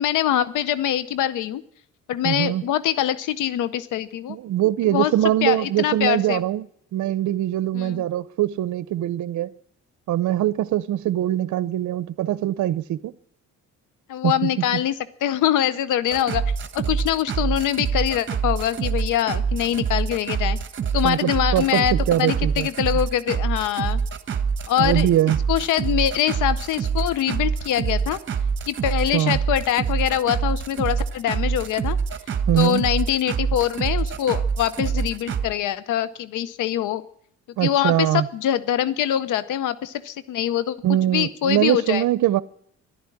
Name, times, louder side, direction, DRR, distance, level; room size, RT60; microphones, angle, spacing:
voice 1, 0.0-1.6 2.1-4.4 4.9-5.1 5.4-6.4 7.7-8.0 14.1-14.9 15.2-16.4 16.7-20.6 20.9-24.0 24.7-25.1 25.5-28.2 28.7-32.0 32.6-37.0 37.6-40.8 41.1-42.0, left 11 dB, 85° left, 0.8 m, -24 dB
voice 2, 2.2-2.6 4.3-6.7 6.9-9.5 10.1-13.1 14.2-14.8 21.0-22.7 24.8-25.4 29.1-29.4 32.5-32.8 37.6-38.3 40.8-42.4, right 13 dB, 70° right, 0.7 m, -22 dB
sound 1, 16.1-35.5, right 6 dB, 40° right, 1.3 m, -26 dB
12.0 x 11.5 x 9.6 m
cardioid pair, 90°, 30 cm